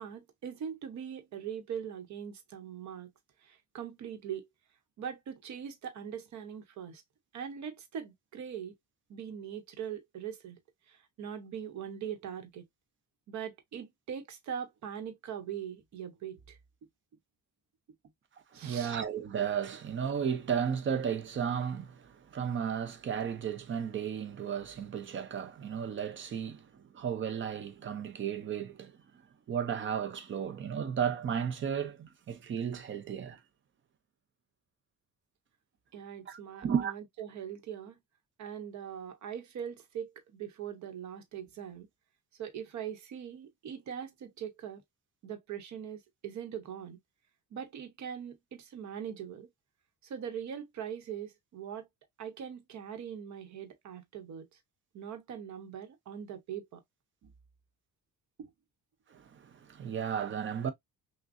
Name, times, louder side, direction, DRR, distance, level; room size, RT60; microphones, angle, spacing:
voice 1, 0.0-3.1 3.4-4.5 5.0-7.0 7.3-8.7 9.1-10.6 10.9-12.6 13.3-16.6 18.5-18.9 35.9-38.0 38.4-41.9 42.4-44.8 45.2-47.0 47.5-49.5 50.0-51.9 52.2-54.5 54.9-56.8 57.2-57.3 58.4-58.5, right 8 dB, 60° right, 1.1 m, -41 dB
voice 2, 18.5-29.0 29.5-33.4 36.3-36.9 59.1-60.7, right 7 dB, 35° right, 0.7 m, -34 dB
6.1 x 2.3 x 2.6 m
cardioid pair, 165°, 33 cm